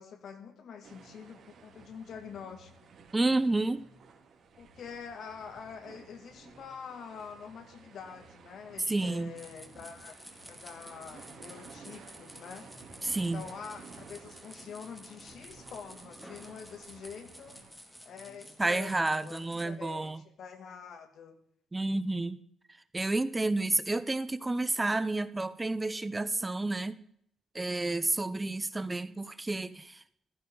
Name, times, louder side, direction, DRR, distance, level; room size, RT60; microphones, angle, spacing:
voice 1, 0.0-2.7 4.5-10.2 10.4-12.6 13.2-17.6 18.0-21.4, left 6 dB, 65° left, 2.5 m, -46 dB
sound 1, 0.8-17.7, right 5 dB, 55° right, 3.0 m, -54 dB
voice 2, 3.1-3.9 8.9-9.3 13.0-13.4 18.6-20.2 21.7-22.4 22.9-27.0 27.5-30.0, right 2 dB, 15° right, 0.7 m, -30 dB
sound 2, 9.3-19.7, equal, 5° left, 2.4 m, -52 dB
15.5 x 15.0 x 3.9 m
cardioid pair, 90°, 0 cm